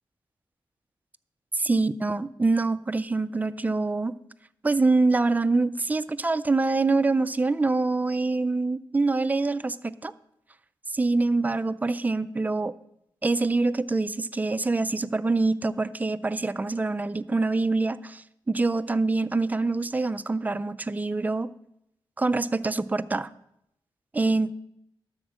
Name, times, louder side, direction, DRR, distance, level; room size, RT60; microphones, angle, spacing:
voice 1, 1.5-4.2 4.6-10.1 10.9-12.7 13.2-21.5 22.2-23.3 24.1-24.5, right 3 dB, 20° right, 15 dB, 0.3 m, -25 dB
12.5 x 4.4 x 6.3 m, 0.79 s
wide cardioid pair, 105°, 9 cm